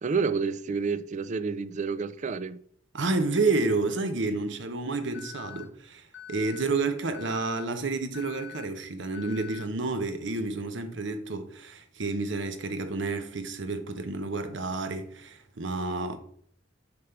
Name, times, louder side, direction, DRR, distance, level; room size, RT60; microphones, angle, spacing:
voice 1, 0.0-2.6, right 5 dB, 40° right, 0.4 m, -29 dB
voice 2, 2.9-16.2, right 3 dB, 70° right, 0.9 m, -30 dB
Alarm, 5.1-5.6 6.1-6.6 7.1-7.6 8.1-8.6 9.1-9.6, left 11 dB, 90° left, 1.3 m, -44 dB
6.7 x 3.6 x 5.7 m
head